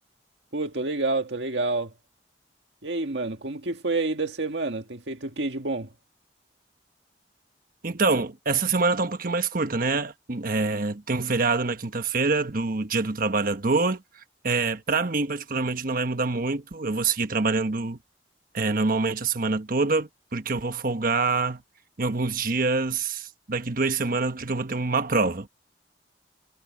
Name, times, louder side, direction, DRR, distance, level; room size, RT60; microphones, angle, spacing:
voice 1, 0.5-1.9 2.8-5.9, right 3 dB, 90° right, 1.8 m, -28 dB
voice 2, 7.8-18.0 18.5-21.6 22.0-25.5, right 3 dB, 55° right, 1.3 m, -25 dB
head